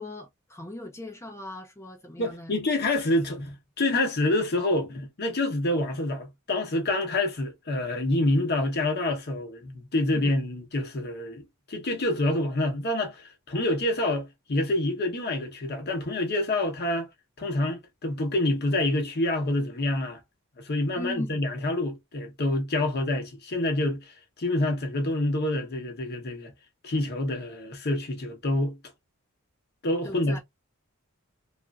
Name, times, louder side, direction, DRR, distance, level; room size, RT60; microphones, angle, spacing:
voice 1, 0.0-2.5 10.1-10.4 20.9-21.5 30.0-30.4, left 1 dB, 15° left, 0.5 m, -39 dB
voice 2, 2.2-17.1 17.4-20.2 20.6-24.1 24.4-26.5 26.8-28.8 29.8-30.4, left 1 dB, 50° left, 0.8 m, -27 dB
2.9 x 2.5 x 2.2 m
head